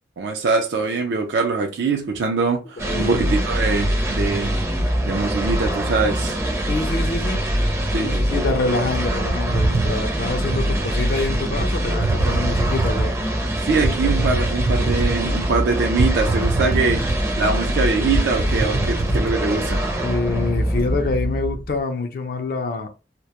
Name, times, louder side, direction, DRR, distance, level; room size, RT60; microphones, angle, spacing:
voice 1, 0.2-4.5 5.1-6.4 7.9-8.9 12.2-12.3 13.6-17.1 17.4-20.0, right 4 dB, 80° right, 0.4 m, -23 dB
voice 2, 2.8-3.4 6.7-7.4 8.0-13.2 20.0-22.9, left 3 dB, 55° left, 0.4 m, -26 dB
sound 1, 2.8-21.8, equal, 15° right, 0.4 m, -24 dB
sound 2, 9.3-10.7 11.5-11.7 12.0-13.2 13.8-15.5 16.0-17.4 17.8-17.9 18.1-19.3, right 2 dB, 60° right, 0.9 m, -23 dB
2.1 x 2.0 x 2.8 m
head